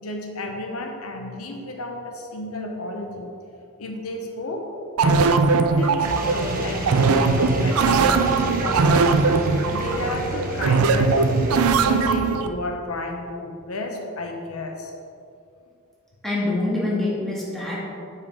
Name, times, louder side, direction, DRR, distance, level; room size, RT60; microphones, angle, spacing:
voice 1, 0.0-3.3 3.8-4.6 5.0-8.1 8.6-11.2 11.8-14.9, left 1 dB, 85° left, 2 dB, 0.9 m, -32 dB
sound 1, 5.0-12.5, right 4 dB, 90° right, 0.4 m, -20 dB
sound 2, 6.0-12.1, right 1 dB, 40° right, 1.1 m, -30 dB
voice 2, 16.2-17.8, left 2 dB, ahead, -7 dB, 1.9 m, -25 dB
6.9 x 5.7 x 4.7 m, 2.5 s
head